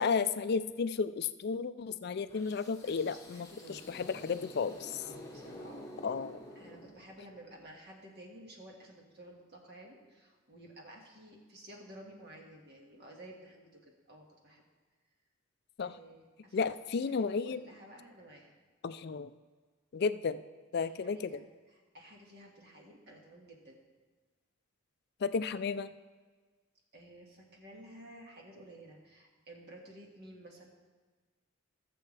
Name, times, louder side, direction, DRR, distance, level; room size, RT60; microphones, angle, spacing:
voice 1, 0.0-5.0 6.0-6.4 15.8-15.9 16.5-17.6 18.8-19.3 19.9-20.4 20.7-21.4 25.2-25.9, left 5 dB, 50° left, 13 dB, 0.4 m, -33 dB
sound 1, 2.3-7.4, left 1 dB, 15° left, 1.0 m, -49 dB
voice 2, 2.8-3.9 5.0-6.1 6.5-14.6 15.8-18.5 20.8-23.8 26.9-30.7, right 1 dB, 50° right, 0 dB, 1.8 m, -53 dB
18.0 x 7.0 x 3.3 m, 1.4 s
head